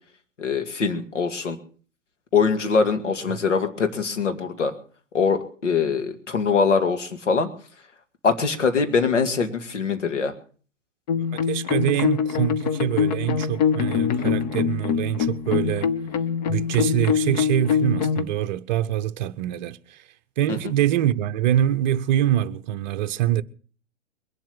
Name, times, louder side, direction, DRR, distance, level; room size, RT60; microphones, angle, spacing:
voice 1, 0.4-1.6 2.3-4.7 5.1-7.5 8.2-10.3 20.5-20.6, left 5 dB, 70° left, 2.1 m, -23 dB
sound 1, 11.1-18.2, left 7 dB, 35° left, 0.9 m, -24 dB
voice 2, 11.3-15.9 16.5-20.0 20.4-23.4, right 11 dB, 35° right, 0.7 m, -24 dB
22.0 x 7.6 x 7.0 m
figure-of-eight pair, 115°, 38 cm